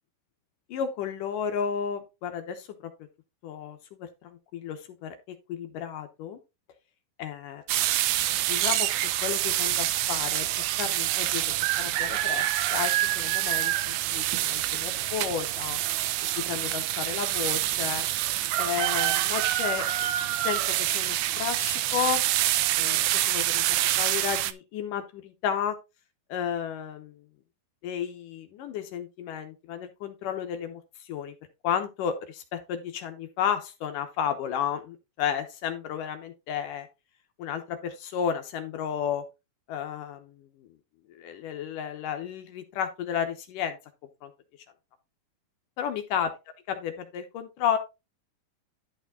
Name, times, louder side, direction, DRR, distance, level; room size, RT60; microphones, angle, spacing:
voice 1, 0.7-2.9 3.4-5.2 5.5-6.4 7.2-7.6 8.5-8.9 9.2-11.4 11.8-15.8 16.4-18.1 18.6-19.9 20.4-22.3 22.8-23.6 24.0-25.8 26.3-27.2 27.8-31.3 31.6-36.9 37.4-39.2 39.7-40.7 41.1-43.8 44.2-44.3 45.8-46.3 46.7-47.8, left 8 dB, 70° left, 8 dB, 2.3 m, -32 dB
sound 1, 7.7-24.5, right 14 dB, 85° right, 1.8 m, -26 dB
11.5 x 5.0 x 3.7 m, 0.25 s
omnidirectional pair, 4.3 m